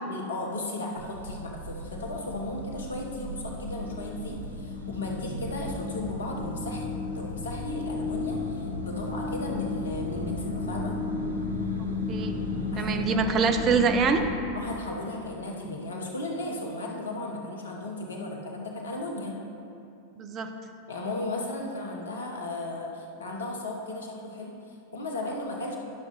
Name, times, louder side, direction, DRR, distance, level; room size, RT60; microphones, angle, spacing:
voice 1, 0.1-6.9 7.1-10.9 12.7-13.0 13.2-13.4 14.5-19.4 20.9-25.8, left 2 dB, 70° left, 0 dB, 1.1 m, -35 dB
sound 1, 1.0-14.3, right 1 dB, 75° right, 0.8 m, -40 dB
sound 2, 1.7-14.5, left 4 dB, 25° left, 1.0 m, -34 dB
voice 2, 12.8-14.3 20.2-20.5, right 5 dB, 30° right, 6 dB, 0.6 m, -24 dB
11.0 x 6.3 x 3.3 m, 2.6 s
figure-of-eight pair, 90°, 0 cm